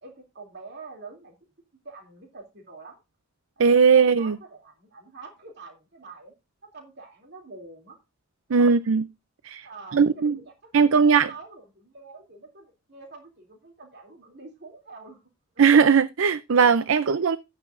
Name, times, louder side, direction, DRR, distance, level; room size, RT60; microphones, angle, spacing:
voice 1, 0.0-1.3 1.8-3.0 3.6-6.3 6.6-8.0 8.5-8.8 9.6-15.3, right 3 dB, 55° right, 2.8 m, -46 dB
voice 2, 3.6-4.4 8.5-9.0 9.4-9.7 9.9-10.4 10.7-11.3 15.6-17.4, right 5 dB, 70° right, 0.5 m, -18 dB
13.5 x 9.3 x 2.5 m
head